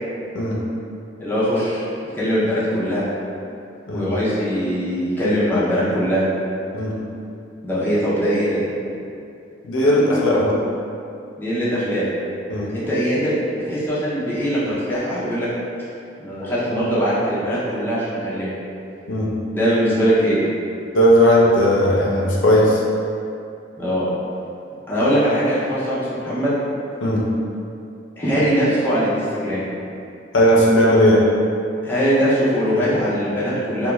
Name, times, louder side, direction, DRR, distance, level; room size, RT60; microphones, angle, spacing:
voice 1, 1.2-1.8 2.1-3.0 3.9-6.2 7.6-8.7 11.4-12.1 12.7-15.5 16.2-18.5 19.5-20.4 23.8-24.1 24.9-26.5 28.2-29.6 31.8-33.9, equal, 10° left, -10 dB, 0.5 m, -21 dB
voice 2, 9.6-10.6 12.5-12.7 19.1-19.3 20.9-22.8 27.0-27.2 30.3-31.2, equal, 75° left, -4 dB, 0.5 m, -16 dB
2.3 x 2.1 x 3.0 m, 2.6 s
head